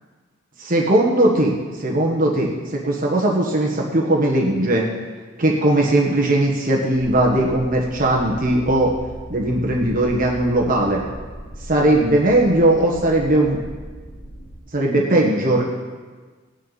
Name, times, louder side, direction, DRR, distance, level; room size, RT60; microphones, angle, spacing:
voice 1, 0.6-4.9 5.4-8.9 9.3-11.0 11.7-13.6 14.7-15.6, right 1 dB, 45° right, -2 dB, 1.5 m, -18 dB
sound 1, 6.9-14.6, equal, 45° left, 2.6 m, -38 dB
17.5 x 10.0 x 4.2 m, 1.4 s
head